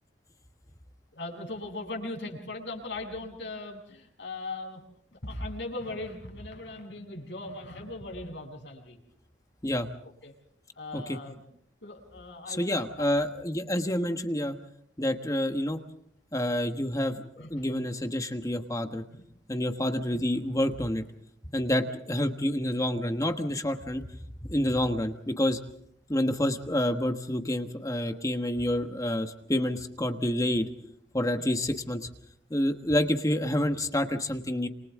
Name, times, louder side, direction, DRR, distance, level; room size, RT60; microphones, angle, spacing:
voice 1, 1.1-4.8 5.1-9.0 10.2-10.3 10.8-11.4 11.8-13.1 17.4-17.7 19.1-19.2 31.4-31.5, left 2 dB, 85° left, 1 dB, 7.5 m, -39 dB
voice 2, 12.5-14.6 15.0-15.8 16.3-19.0 19.5-21.0 21.5-24.0 24.4-25.6 26.1-30.7 31.1-32.1 32.5-34.7, left 1 dB, 20° left, 6 dB, 1.3 m, -28 dB
29.0 x 27.5 x 3.7 m, 0.69 s
head